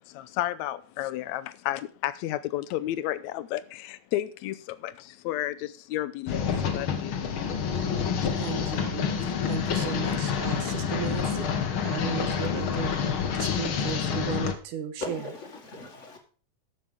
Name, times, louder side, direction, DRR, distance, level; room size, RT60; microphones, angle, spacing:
voice 1, 0.0-7.2, left 14 dB, 75° left, 1.9 m, -32 dB
sound 1, 6.3-14.5, left 7 dB, 55° left, 1.6 m, -28 dB
voice 2, 8.4-12.9 13.3-15.2, right 8 dB, 80° right, 2.6 m, -36 dB
voice 3, 15.0-16.2, left 3 dB, 30° left, 1.8 m, -38 dB
13.5 x 6.2 x 5.1 m
omnidirectional pair, 3.5 m